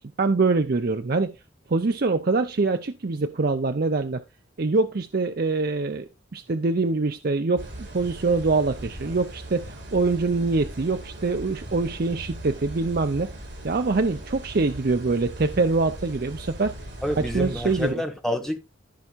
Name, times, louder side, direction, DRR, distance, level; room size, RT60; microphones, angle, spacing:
voice 1, 0.0-1.4 1.7-4.2 4.6-13.3 13.6-16.7 17.1-18.0, right 3 dB, 50° right, 0.6 m, -24 dB
sound 1, 7.6-17.9, right 1 dB, 70° right, 5.3 m, -39 dB
voice 2, 17.0-18.6, left 1 dB, ahead, 1.3 m, -28 dB
15.0 x 5.6 x 2.5 m
head